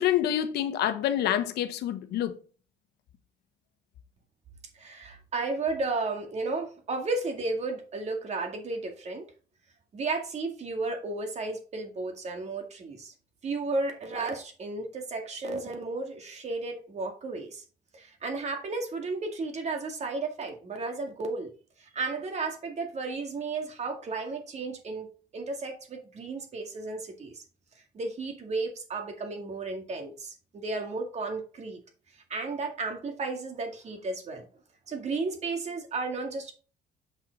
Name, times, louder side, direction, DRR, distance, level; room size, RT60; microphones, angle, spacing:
voice 1, 0.0-2.4, left 11 dB, 75° left, 1.0 m, -27 dB
voice 2, 4.7-9.2 9.9-13.1 13.4-17.6 17.9-21.5 21.8-25.1 25.3-27.4 27.9-31.8 32.3-34.5 34.9-36.5, right 3 dB, 40° right, 2.2 m, -33 dB
7.7 x 5.8 x 4.0 m
cardioid pair, 110°, 17 cm